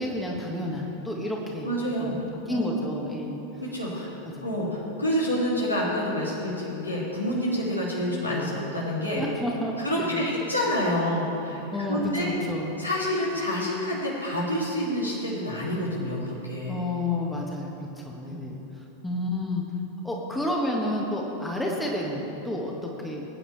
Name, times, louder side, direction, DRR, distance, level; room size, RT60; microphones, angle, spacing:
voice 1, 0.0-1.7 2.0-2.2 2.5-3.4 4.4-4.6 9.1-10.3 11.7-12.7 16.7-18.6 19.0-19.6 20.0-22.7 23.0-23.2, left 1 dB, 5° left, -1 dB, 1.5 m, -30 dB
voice 2, 1.6-2.2 2.5-2.7 3.6-4.1 4.4-9.2 9.8-12.3 12.8-16.8 18.3-18.4, equal, 85° left, -5 dB, 2.5 m, -28 dB
20.5 x 9.5 x 3.3 m, 3.0 s
figure-of-eight pair, 90°, 0 cm